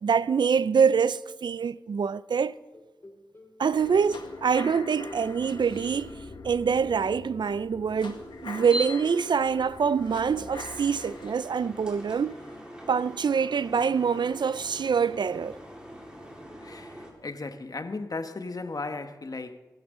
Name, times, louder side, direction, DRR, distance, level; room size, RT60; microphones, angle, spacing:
voice 1, 0.0-2.6 3.6-6.2 6.4-12.4 12.9-15.6, right 6 dB, 75° right, 0.4 m, -25 dB
sound 1, 2.7-3.6 4.0-6.2 6.5-7.1, left 1 dB, 35° left, 2.8 m, -50 dB
sound 2, 3.7-13.7 14.1-14.2, left 3 dB, 90° left, 1.7 m, -43 dB
sound 3, 8.1-17.1, right 1 dB, 10° right, 4.1 m, -42 dB
voice 2, 16.6-19.6, left 3 dB, 55° left, 1.1 m, -36 dB
22.0 x 12.0 x 3.7 m
wide cardioid pair, 60°, 8 cm